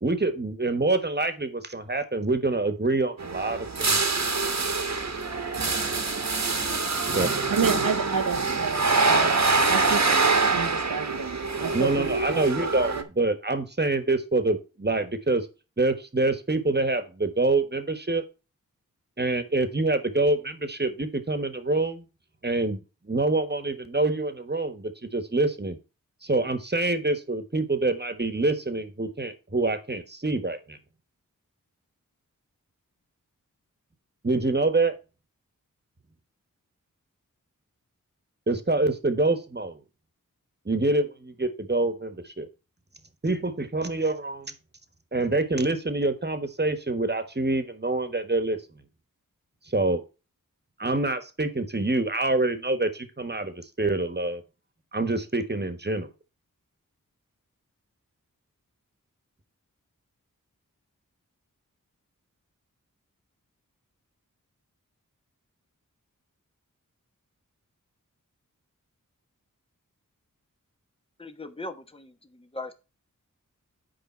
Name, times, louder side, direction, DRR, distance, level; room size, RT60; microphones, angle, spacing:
voice 1, 0.0-4.0 7.1-7.4 11.7-15.5 15.8-18.2 19.2-22.0 22.4-25.8 26.2-30.8 34.2-34.9 38.5-39.8 40.6-42.5 43.2-44.5 45.1-48.6 49.7-50.0 50.8-54.4 54.9-56.1, right 2 dB, 30° right, 10 dB, 1.4 m, -26 dB
sound 1, 3.2-13.0, right 3 dB, 55° right, 1.3 m, -25 dB
voice 2, 7.5-9.4 9.7-10.0 10.5-12.4 12.9-13.0, right 6 dB, 80° right, 6 dB, 0.9 m, -30 dB
voice 3, 71.2-72.1 72.5-72.7, left 2 dB, 15° left, 7 dB, 1.1 m, -38 dB
8.6 x 5.0 x 4.4 m, 0.31 s
wide cardioid pair, 45°, 33 cm